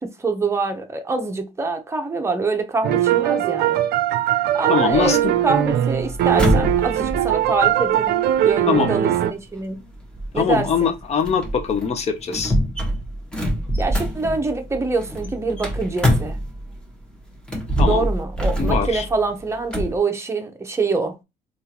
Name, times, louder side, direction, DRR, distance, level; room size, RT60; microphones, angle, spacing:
voice 1, 0.0-3.8 4.5-5.1 5.4-9.8 10.3-10.9 13.8-16.4 17.8-21.2, right 3 dB, 15° right, 0.7 m, -25 dB
sound 1, 2.8-9.3, right 11 dB, 70° right, 0.5 m, -20 dB
voice 2, 4.7-5.3 8.7-8.9 10.3-12.6 17.8-18.1 18.6-19.0, left 6 dB, 40° left, 0.7 m, -22 dB
sound 2, 4.9-16.9 17.4-20.0, equal, 5° left, 1.1 m, -25 dB
3.6 x 2.5 x 2.9 m
cardioid pair, 110°, 17 cm